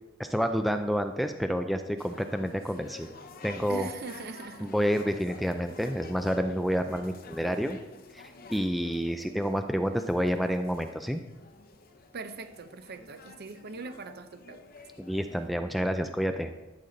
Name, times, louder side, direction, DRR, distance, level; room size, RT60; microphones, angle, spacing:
voice 1, 0.2-3.1 3.4-3.9 4.6-7.8 8.1-11.2 15.0-16.5, equal, ahead, 0.3 m, -29 dB
sound 1, 2.0-15.5, left 4 dB, 45° left, 0.7 m, -50 dB
voice 2, 3.7-4.7 12.1-14.6, right 4 dB, 50° right, 0.6 m, -41 dB
12.5 x 6.7 x 3.9 m
head